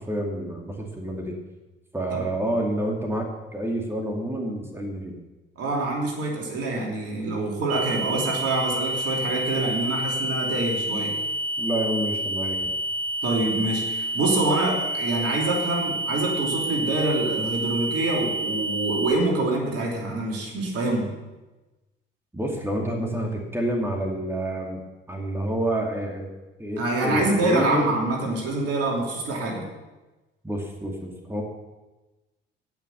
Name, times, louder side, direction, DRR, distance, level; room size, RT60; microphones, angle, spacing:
voice 1, 0.0-1.4 1.9-5.2 11.6-12.6 22.3-24.8 25.1-26.3 26.6-27.9 30.4-31.4, right 1 dB, 10° right, 1 dB, 2.4 m, -28 dB
voice 2, 5.6-11.1 13.2-21.1 26.8-29.7, right 2 dB, 50° right, -1 dB, 3.1 m, -26 dB
sound 1, 7.7-19.1, right 1 dB, 70° right, 3.4 m, -29 dB
17.0 x 6.0 x 6.8 m, 1.1 s
figure-of-eight pair, 50°, 30 cm